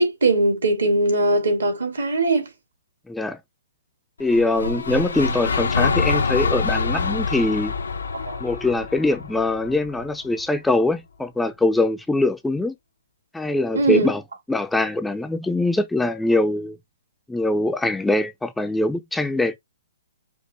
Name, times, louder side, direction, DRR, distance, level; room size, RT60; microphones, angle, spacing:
voice 1, 0.0-2.5 8.1-8.4 13.7-14.1, right 2 dB, 85° right, 2.1 m, -20 dB
voice 2, 3.1-3.4 4.2-7.7 8.4-12.7 13.3-14.2 14.5-16.8 17.3-19.6, left 2 dB, 5° left, 0.4 m, -22 dB
sound 1, 4.2-10.4, left 4 dB, 90° left, 0.7 m, -25 dB
5.1 x 2.0 x 4.2 m
hypercardioid pair, 140°, 0 cm